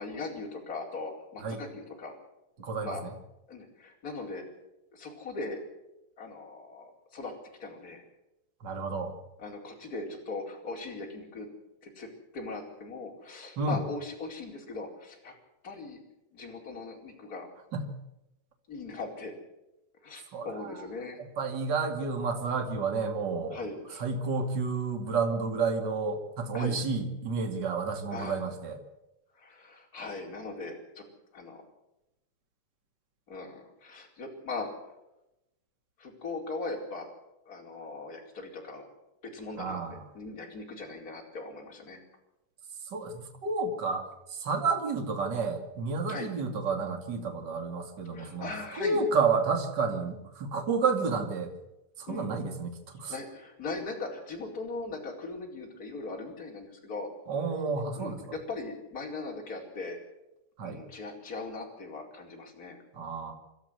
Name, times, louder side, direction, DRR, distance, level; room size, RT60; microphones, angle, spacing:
voice 1, 0.0-2.2 2.8-3.0 3.5-4.4 4.9-5.6 6.2-7.3 7.6-8.0 9.4-11.5 11.8-12.1 12.3-15.3 15.6-16.0 16.3-17.5 18.7-19.3 20.0-21.2 23.5-24.0 26.5-26.8 28.1-28.4 29.3-31.0 31.3-31.6 33.3-34.9 36.0-37.1 37.5-38.9 39.2-39.8 40.1-42.0 46.1-46.3 48.1-49.0 52.1-52.3 53.1-57.1 57.9-60.0 60.6-62.8, left 3 dB, 20° left, 0 dB, 4.3 m, -39 dB
voice 2, 2.6-3.1 8.6-9.1 13.5-13.8 17.7-17.9 20.3-20.8 21.2-23.6 24.0-28.8 39.6-40.0 42.9-48.5 48.7-51.5 52.0-53.1 57.3-58.2 60.6-60.8 62.9-63.3, right 4 dB, 40° right, 4 dB, 1.5 m, -30 dB
27.5 x 13.0 x 8.1 m, 0.92 s
omnidirectional pair, 6.0 m